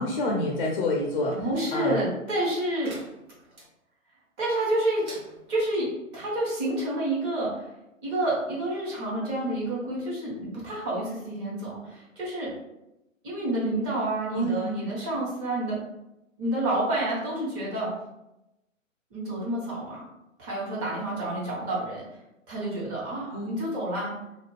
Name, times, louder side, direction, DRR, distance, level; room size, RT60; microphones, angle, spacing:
voice 1, 0.0-1.4 1.7-2.0 14.3-14.9 23.3-23.6, left 1 dB, 40° left, 0 dB, 0.5 m, -28 dB
voice 2, 1.3-2.9 4.4-5.2 5.5-7.6 8.0-12.5 13.2-15.8 16.4-17.9 19.1-20.0 20.4-22.1 22.5-24.1, right 1 dB, 20° right, -6 dB, 1.0 m, -29 dB
sound 1, 2.8-3.7 4.9-5.8, right 2 dB, 85° right, 1.3 m, -47 dB
2.4 x 2.3 x 3.1 m, 0.92 s
hypercardioid pair, 135°, 41 cm